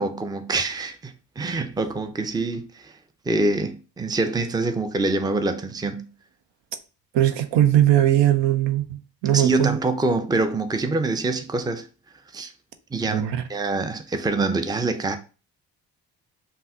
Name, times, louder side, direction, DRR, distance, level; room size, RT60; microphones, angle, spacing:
voice 1, 0.0-3.0 3.3-6.1 9.3-11.9 12.3-12.5 12.9-13.2 13.5-15.2, right 3 dB, 10° right, 0.6 m, -25 dB
voice 2, 7.1-9.8 13.0-13.4, right 12 dB, 65° right, 0.7 m, -20 dB
5.6 x 2.2 x 3.7 m
hypercardioid pair, 50°, 47 cm